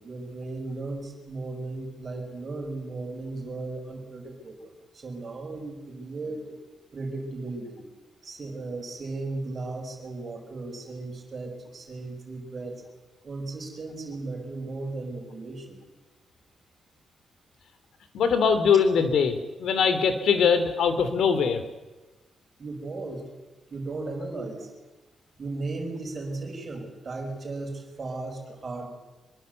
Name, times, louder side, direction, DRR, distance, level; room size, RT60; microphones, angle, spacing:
voice 1, 0.0-6.5 6.9-7.9 8.2-12.8 13.2-15.9 22.6-23.2 23.7-24.7 25.4-28.9, right 3 dB, 35° right, 2 dB, 5.8 m, -36 dB
voice 2, 18.1-21.6, left 6 dB, 75° left, 10 dB, 2.9 m, -22 dB
25.0 x 22.5 x 8.1 m, 1.1 s
wide cardioid pair, 165°, 0 cm